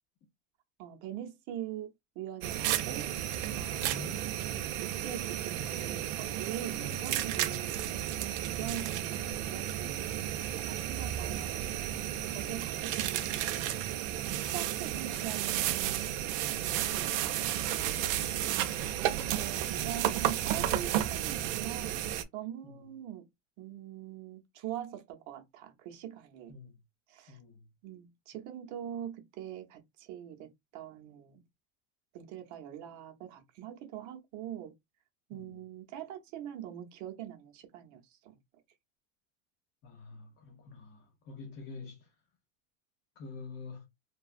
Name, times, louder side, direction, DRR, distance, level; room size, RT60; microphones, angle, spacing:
voice 1, 0.8-3.1 3.5-4.1 4.8-7.8 8.2-11.7 12.3-13.8 14.5-18.7 19.3-22.0 22.3-23.3 23.6-26.5 27.1-27.4 27.8-31.4 32.1-34.7 35.3-38.4, right 11 dB, 50° right, 0.7 m, -43 dB
sound 1, 2.4-22.2, right 12 dB, 75° right, 0.5 m, -33 dB
voice 2, 3.8-4.3 6.8-7.0 7.4-7.7 8.6-8.8 12.3-12.5 18.2-18.5 19.2-19.4 22.6-22.8 26.5-26.8 27.3-27.7 35.3-35.6 39.8-42.1 43.2-43.9, left 3 dB, 30° left, 0.5 m, -47 dB
2.8 x 2.3 x 2.4 m
supercardioid pair, 140°, 39 cm